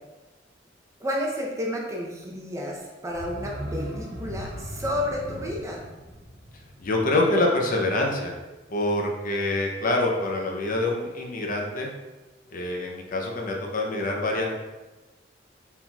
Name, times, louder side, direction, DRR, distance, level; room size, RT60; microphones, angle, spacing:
voice 1, 1.0-5.8, left 1 dB, 15° right, -1 dB, 0.6 m, -31 dB
sound 1, 3.1-7.8 8.1-8.2, equal, 65° right, 0.8 m, -38 dB
voice 2, 6.8-8.3 8.7-11.9 12.5-14.5, left 2 dB, 50° left, 0 dB, 0.6 m, -25 dB
4.3 x 3.8 x 2.3 m, 1.1 s
head